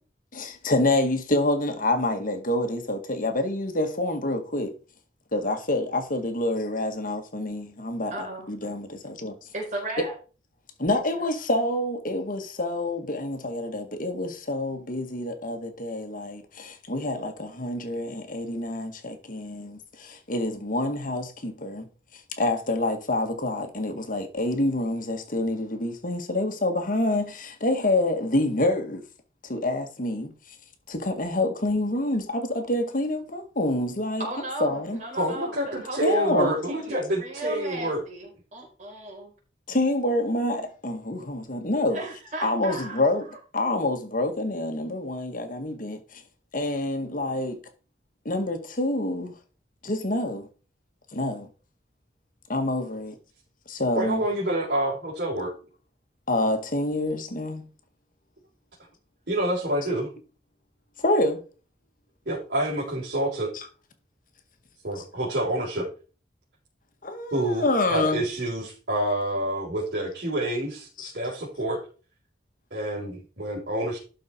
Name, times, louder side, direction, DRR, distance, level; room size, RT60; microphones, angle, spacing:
voice 1, 0.3-4.7 5.3-8.1 8.5-9.3 10.0-10.1 10.8-21.9 22.1-29.0 29.4-30.6 30.9-34.3 34.6-35.0 36.0-36.6 39.7-42.0 42.4-43.3 43.5-46.2 46.5-47.6 48.3-49.4 49.8-50.5 51.1-51.5 52.5-53.2 53.7-54.2 56.3-57.7 61.0-61.4 63.5-63.7 65.0-65.1 67.0-68.2 71.0-71.1, left 1 dB, 50° left, 1.8 m, -27 dB
voice 2, 8.1-8.5 9.5-10.1 34.2-39.3 41.9-43.0 43.3-43.4, right 1 dB, 45° right, 4.6 m, -35 dB
voice 3, 35.2-38.0 54.0-55.5 59.3-60.1 62.3-63.5 64.8-65.9 67.3-71.8 72.7-74.0, right 1 dB, 65° right, 4.1 m, -28 dB
12.5 x 5.4 x 4.5 m
head